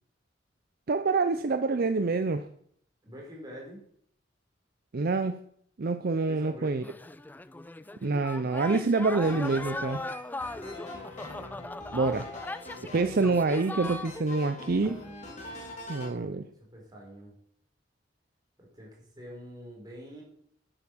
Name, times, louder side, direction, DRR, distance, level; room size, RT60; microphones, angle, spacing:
voice 1, 0.9-2.4 4.9-5.4 5.8-6.8 8.0-10.0 11.9-12.3 12.9-15.0 15.9-16.4, right 3 dB, 55° right, 10 dB, 0.5 m, -26 dB
voice 2, 3.0-3.8 6.3-6.9 10.5-11.2 16.6-17.3 18.6-20.2, equal, 20° right, -2 dB, 4.2 m, -46 dB
sound 1, 6.8-14.5 14.8-15.5, left 2 dB, 10° left, 0.3 m, -39 dB
sound 2, 9.2-16.1, left 1 dB, 40° left, 3.1 m, -44 dB
9.0 x 9.0 x 6.2 m, 0.66 s
head